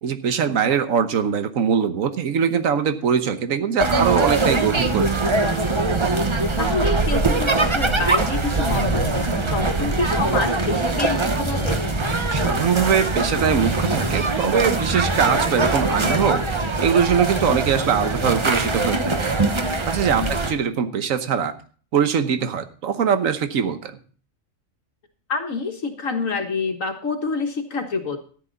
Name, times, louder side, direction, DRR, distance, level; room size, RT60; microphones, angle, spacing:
voice 1, 0.0-5.4 12.3-16.4 16.8-19.3 19.8-21.5 21.9-23.9, right 7 dB, 75° right, 9 dB, 1.4 m, -22 dB
sound 1, 3.8-20.5, right 3 dB, 25° right, 0.9 m, -22 dB
voice 2, 6.6-11.9 20.2-20.3 25.3-28.2, left 4 dB, 70° left, 4 dB, 1.8 m, -27 dB
Thunder, 8.5-18.2, left 4 dB, 40° left, 0.3 m, -35 dB
13.5 x 10.0 x 4.0 m, 0.42 s
omnidirectional pair, 1.4 m